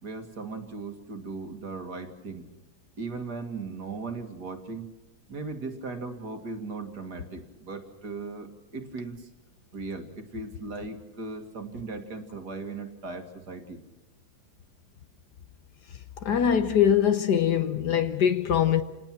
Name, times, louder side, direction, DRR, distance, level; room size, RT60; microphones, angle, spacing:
voice 1, 0.0-2.5 3.0-4.9 5.3-9.3 9.7-13.8, right 3 dB, 55° right, 2.5 m, -38 dB
voice 2, 16.2-18.8, left 9 dB, 60° left, 1.6 m, -22 dB
28.0 x 19.5 x 6.0 m
omnidirectional pair, 2.2 m